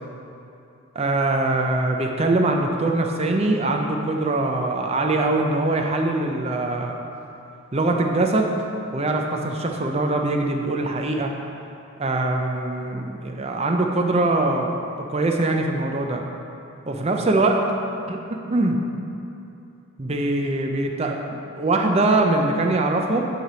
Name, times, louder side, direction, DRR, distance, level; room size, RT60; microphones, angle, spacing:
voice 1, 1.0-7.0 7.7-8.5 8.9-11.3 12.0-14.7 15.1-16.2 16.9-17.6 18.1-18.8 20.0-23.2, right 2 dB, 30° right, 2 dB, 0.5 m, -22 dB
9.0 x 3.4 x 6.1 m, 2.7 s
head